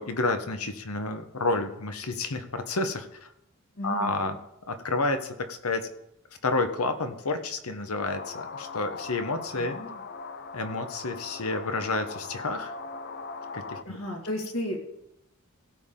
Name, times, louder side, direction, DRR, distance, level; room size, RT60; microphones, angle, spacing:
voice 1, 0.0-3.3 3.8-4.3 4.7-5.9 6.4-9.7 10.5-12.7 13.5-14.0, left 2 dB, 90° left, 8 dB, 1.1 m, -30 dB
voice 2, 3.8-4.4 9.6-10.0 13.9-14.8, left 1 dB, 65° left, 0 dB, 2.2 m, -34 dB
sound 1, 8.0-13.8, left 4 dB, 50° left, 0.5 m, -40 dB
16.5 x 7.1 x 3.8 m, 0.82 s
head